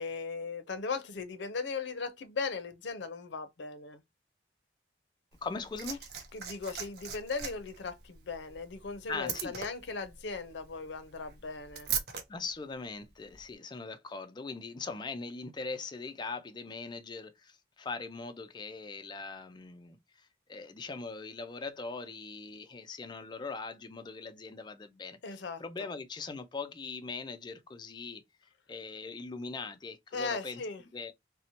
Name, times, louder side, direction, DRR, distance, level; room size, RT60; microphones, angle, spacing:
voice 1, 0.0-4.0 6.3-11.9 25.2-25.6 30.1-30.8, left 4 dB, 80° left, 0.5 m, -38 dB
Liquid, 5.3-12.2 13.3-13.4, right 7 dB, 60° right, 0.6 m, -40 dB
voice 2, 5.4-6.0 9.1-9.5 12.3-25.2 25.6-28.2 28.7-30.6 30.9-31.1, left 4 dB, 25° left, 0.3 m, -41 dB
2.7 x 2.1 x 2.7 m
head